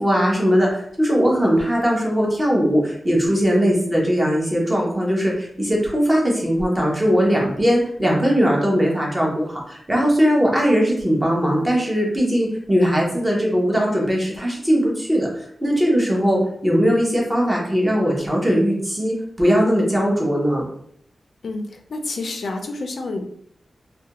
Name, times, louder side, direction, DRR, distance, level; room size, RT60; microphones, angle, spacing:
voice 1, 0.0-20.6, equal, 15° right, -3 dB, 0.7 m, -19 dB
voice 2, 21.4-23.2, left 2 dB, 70° left, 4 dB, 0.4 m, -29 dB
2.4 x 2.2 x 2.8 m, 0.66 s
wide cardioid pair, 130°, 0 cm